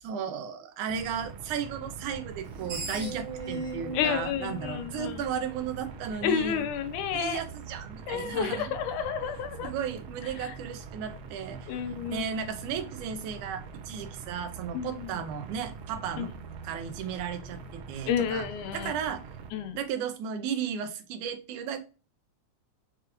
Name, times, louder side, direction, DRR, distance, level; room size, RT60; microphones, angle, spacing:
voice 1, 0.0-6.7 7.1-8.7 9.6-11.7 12.1-16.3 16.6-18.5 18.7-19.2 19.7-21.8, right 7 dB, 85° right, 8 dB, 2.3 m, -34 dB
sound 1, 0.9-19.5, right 5 dB, 70° right, 1.7 m, -44 dB
Screech, 2.3-5.6, right 3 dB, 50° right, 1.5 m, -38 dB
voice 2, 3.9-5.2 6.2-7.4 8.1-9.7 10.4-10.5 11.7-12.3 14.7-15.2 16.2-16.3 18.1-18.9 19.5-19.8, left 8 dB, 85° left, 8 dB, 2.2 m, -31 dB
6.6 x 2.5 x 2.9 m, 0.33 s
omnidirectional pair, 3.4 m